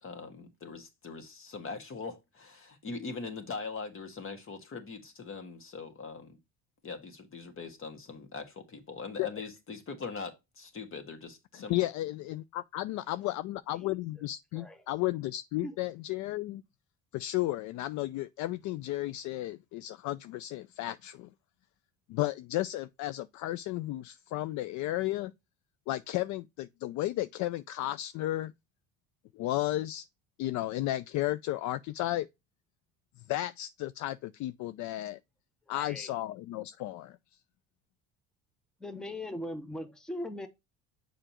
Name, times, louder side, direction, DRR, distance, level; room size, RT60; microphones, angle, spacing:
voice 1, 0.0-6.4 6.8-11.7, left 4 dB, 40° left, 1.8 m, -42 dB
voice 2, 11.5-16.6 17.1-21.3 22.1-25.3 25.9-28.5 29.3-30.1 30.4-32.3 33.3-35.2 35.7-37.2, left 16 dB, 60° left, 0.4 m, -33 dB
voice 3, 35.7-36.1 38.8-40.5, left 1 dB, ahead, 0.8 m, -39 dB
6.8 x 5.0 x 2.9 m
cardioid pair, 105°, 33 cm